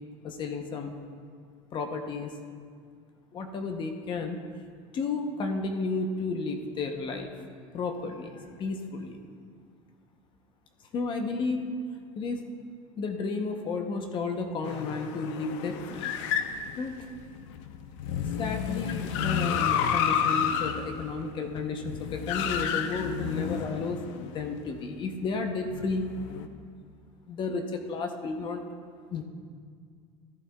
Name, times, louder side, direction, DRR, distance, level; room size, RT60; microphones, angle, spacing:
voice 1, 0.2-0.9 1.7-2.3 3.3-4.4 4.9-7.3 7.7-9.2 10.9-11.7 12.1-12.4 13.0-16.1 16.8-17.1 18.4-26.1 27.3-28.6 29.1-29.2, left 4 dB, 30° left, 5 dB, 0.7 m, -32 dB
sound 1, 14.6-24.6 25.7-26.5, left 8 dB, 80° left, 0.6 m, -31 dB
13.5 x 11.5 x 2.2 m, 2.1 s
cardioid pair, 150°, 16 cm